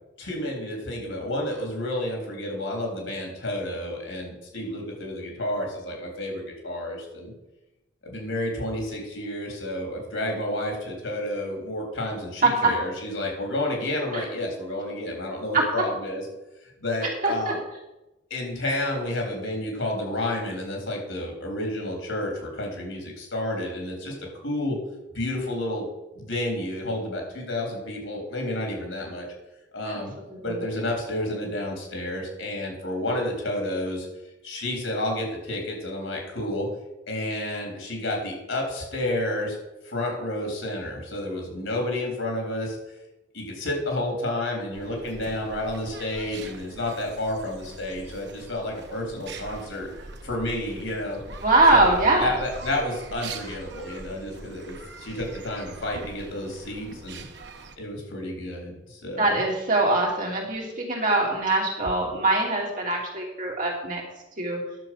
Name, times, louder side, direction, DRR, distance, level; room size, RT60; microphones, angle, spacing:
voice 1, 0.2-7.3 8.0-16.2 16.8-17.6 18.3-24.1 24.4-24.8 25.1-25.9 26.1-29.3 29.7-30.1 30.4-34.1 34.4-36.7 37.1-39.6 39.8-42.8 43.3-49.9 50.2-51.2 51.7-51.9 52.2-57.2 57.8-59.4, left 1 dB, 85° left, 1 dB, 3.7 m, -30 dB
voice 2, 12.4-12.7 14.1-14.2 15.5-15.7 17.2-17.6 29.9-30.6 51.3-52.3 59.2-64.0 64.4-64.6, right 2 dB, 45° right, -2 dB, 2.9 m, -23 dB
sound 1, 44.7-57.8, right 3 dB, 60° right, 1.0 m, -42 dB
10.5 x 6.9 x 6.1 m, 0.98 s
head